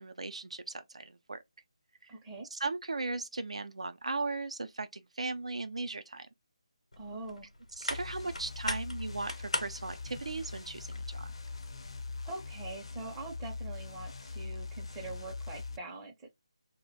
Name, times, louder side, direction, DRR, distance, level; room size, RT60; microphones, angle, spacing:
voice 1, 0.0-1.4 2.5-6.3 7.8-11.3, right 3 dB, 70° right, 0.5 m, -37 dB
voice 2, 2.1-2.5 7.0-7.5 12.3-16.3, right 2 dB, 10° right, 0.5 m, -43 dB
sound 1, 6.9-12.1, left 2 dB, 80° left, 0.8 m, -41 dB
sound 2, 7.9-15.8, left 4 dB, 55° left, 0.5 m, -42 dB
2.4 x 2.1 x 3.9 m
figure-of-eight pair, 155°, 3 cm